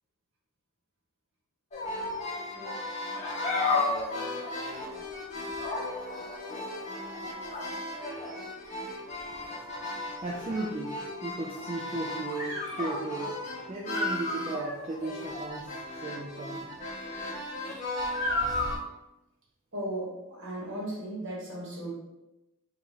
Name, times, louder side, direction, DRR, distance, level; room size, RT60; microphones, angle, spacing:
sound 1, 1.7-18.8, left 2 dB, 35° left, 0.7 m, -34 dB
voice 1, 2.5-2.9 19.7-21.9, right 1 dB, 55° right, -4 dB, 1.2 m, -36 dB
voice 2, 9.6-10.9 11.2-13.3 13.7-16.7, right 2 dB, 25° right, -3 dB, 0.3 m, -36 dB
2.9 x 2.4 x 4.0 m, 0.96 s
head